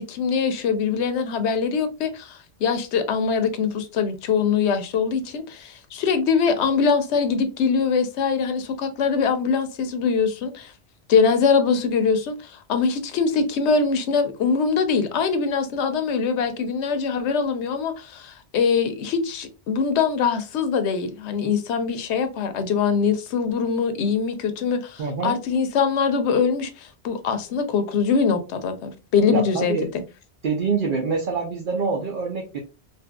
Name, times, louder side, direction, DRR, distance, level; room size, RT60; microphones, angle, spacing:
voice 1, 0.0-10.7 11.1-30.0, left 5 dB, 85° left, 0.9 m, -23 dB
voice 2, 25.0-25.3 29.3-29.9 30.4-32.6, right 4 dB, 60° right, 0.6 m, -25 dB
2.7 x 2.5 x 2.2 m
omnidirectional pair, 1.1 m